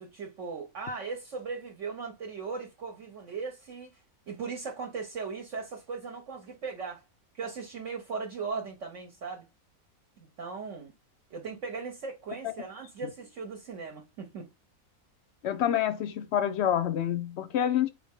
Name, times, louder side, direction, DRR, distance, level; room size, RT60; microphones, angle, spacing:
voice 1, 0.0-3.9 4.3-7.0 7.3-9.5 10.2-10.9 11.3-14.5, right 5 dB, 60° right, 1.1 m, -38 dB
voice 2, 15.4-17.9, left 10 dB, 65° left, 0.6 m, -27 dB
4.2 x 3.4 x 3.6 m
omnidirectional pair, 1.5 m